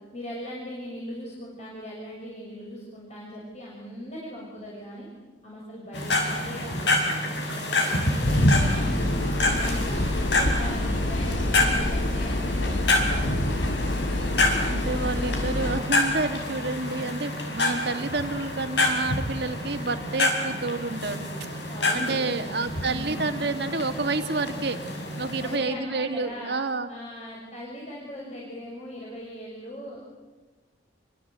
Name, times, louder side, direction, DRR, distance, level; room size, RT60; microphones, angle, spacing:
voice 1, 0.1-5.1 5.4-6.9 7.8-13.4 21.7-22.5 22.8-23.3 25.4-26.6 26.9-30.0, equal, 35° left, -4 dB, 7.0 m, -39 dB
sound 1, 5.9-25.6, left 1 dB, 65° left, 5.5 m, -27 dB
sound 2, 8.2-15.8, left 1 dB, 80° left, 3.5 m, -27 dB
voice 2, 14.7-24.8 25.2-26.9, right 3 dB, 60° right, 7 dB, 2.3 m, -29 dB
29.0 x 24.5 x 8.3 m, 1.3 s
head